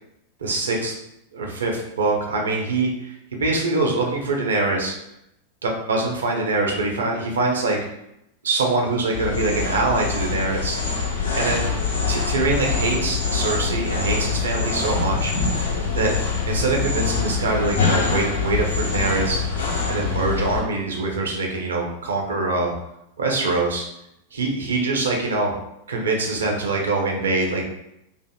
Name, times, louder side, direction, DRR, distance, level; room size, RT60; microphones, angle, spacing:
voice 1, 0.4-0.9 1.3-4.9 5.6-7.8 8.4-10.8 11.3-11.8 12.1-15.3 15.9-16.1 16.5-19.4 19.9-22.7 23.2-23.9 24.3-25.5 25.9-27.7, right 3 dB, 70° right, 0 dB, 0.6 m, -23 dB
sound 1, 9.1-20.6, left 5 dB, 75° left, 0.7 m, -24 dB
2.7 x 2.6 x 2.3 m, 0.82 s
figure-of-eight pair, 90°, 0 cm